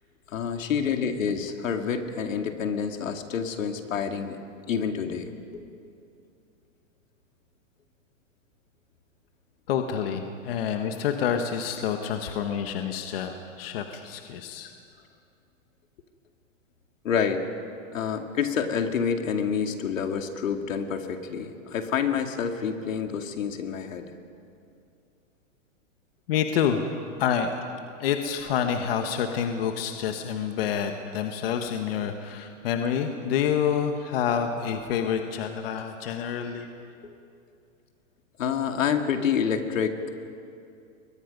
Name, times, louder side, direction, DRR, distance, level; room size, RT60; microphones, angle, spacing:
voice 1, 0.3-4.4 4.7-5.6 17.0-17.5 17.9-24.1 37.0-37.1 38.4-40.1, left 7 dB, 75° left, 5 dB, 2.3 m, -28 dB
voice 2, 9.7-14.7 26.3-26.9 27.2-27.6 28.0-36.7, left 8 dB, 45° left, 5 dB, 1.4 m, -28 dB
30.0 x 22.5 x 5.4 m, 2.5 s
hypercardioid pair, 165°, 39 cm